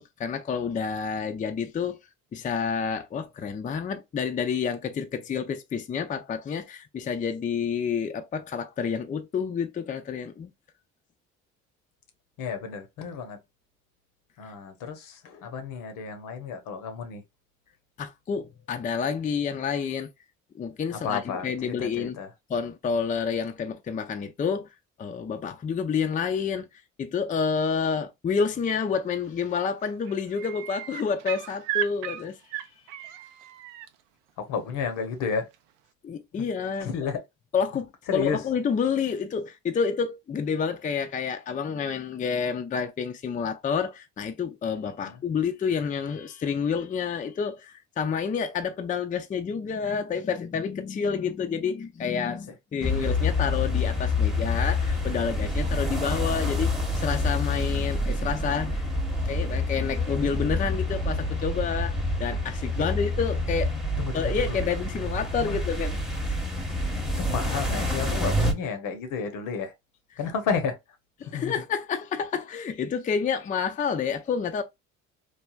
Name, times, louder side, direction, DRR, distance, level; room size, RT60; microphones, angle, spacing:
voice 1, 0.0-2.0 2.3-10.5 14.4-14.5 18.0-20.1 20.5-22.2 22.5-24.7 25.0-26.7 27.0-32.4 36.0-36.9 37.5-58.8 59.3-63.7 64.1-66.0 71.2-74.6, left 6 dB, 25° left, 0.4 m, -29 dB
voice 2, 12.4-13.4 14.4-17.2 20.9-22.3 34.4-35.5 36.8-37.2 38.1-38.4 45.0-45.2 62.8-62.9 64.0-64.6 65.4-65.6 67.2-69.7 70.2-70.8 71.2-71.5, left 6 dB, 65° left, 0.8 m, -32 dB
sound 1, 29.2-29.5 29.8-33.9 35.5-35.6, right 12 dB, 90° right, 0.5 m, -35 dB
sound 2, 52.8-68.5, left 2 dB, ahead, 0.9 m, -27 dB
3.2 x 2.2 x 2.2 m
hypercardioid pair, 60°, 34 cm